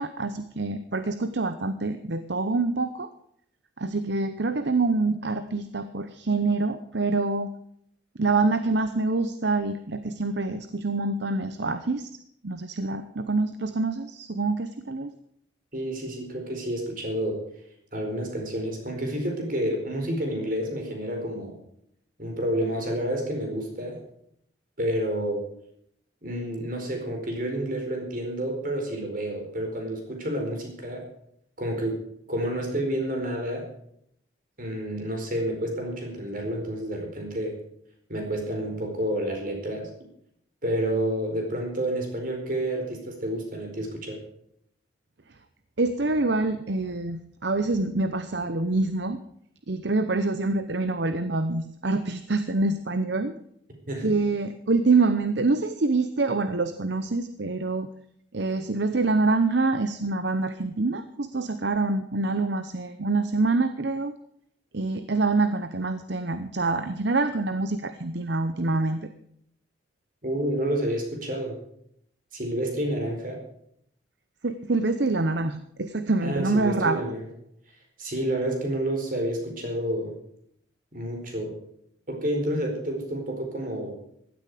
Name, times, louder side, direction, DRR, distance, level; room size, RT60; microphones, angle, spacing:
voice 1, 0.0-3.1 3.8-7.5 8.2-12.1 12.4-15.1 45.8-49.2 49.7-53.3 54.0-57.9 58.3-64.1 64.7-69.1 74.4-77.0, right 3 dB, 60° right, 11 dB, 0.8 m, -26 dB
voice 2, 15.7-17.4 17.9-21.5 22.2-24.0 24.8-25.4 26.2-31.1 31.6-32.0 32.3-33.7 34.6-37.6 38.1-39.9 40.6-44.2 53.9-54.1 70.2-71.5 72.3-73.4 76.2-77.3 78.0-80.1 80.9-81.5 82.1-84.0, right 1 dB, 45° right, 2 dB, 4.6 m, -29 dB
16.0 x 12.5 x 5.0 m, 0.69 s
head